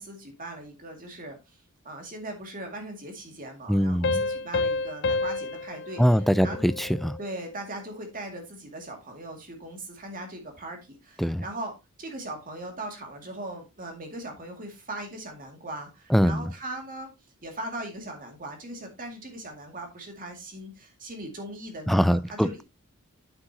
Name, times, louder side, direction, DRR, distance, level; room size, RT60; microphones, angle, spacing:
voice 1, 0.0-1.4 1.8-6.6 7.2-11.7 12.0-17.1 17.4-22.6, right 1 dB, 40° right, 2.3 m, -39 dB
voice 2, 3.7-4.2 6.0-7.2 11.2-11.4 16.1-16.5 21.9-22.6, equal, ahead, 0.3 m, -23 dB
sound 1, 4.0-7.3, left 3 dB, 55° left, 0.6 m, -30 dB
8.9 x 7.7 x 2.8 m
head